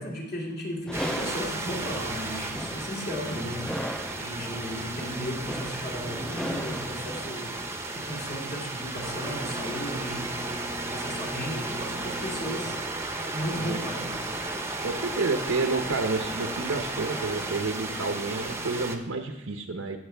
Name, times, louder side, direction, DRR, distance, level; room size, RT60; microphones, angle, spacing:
voice 1, 0.0-10.5 10.9-12.8 13.3-14.2, equal, 55° left, -3 dB, 2.6 m, -35 dB
sound 1, 0.9-7.2, equal, 5° left, 0.3 m, -37 dB
sound 2, 0.9-19.0, right 2 dB, 15° right, 0.7 m, -34 dB
voice 2, 13.5-13.8 14.8-20.0, right 3 dB, 85° right, 4 dB, 0.8 m, -30 dB
15.5 x 7.3 x 3.4 m, 1.0 s
head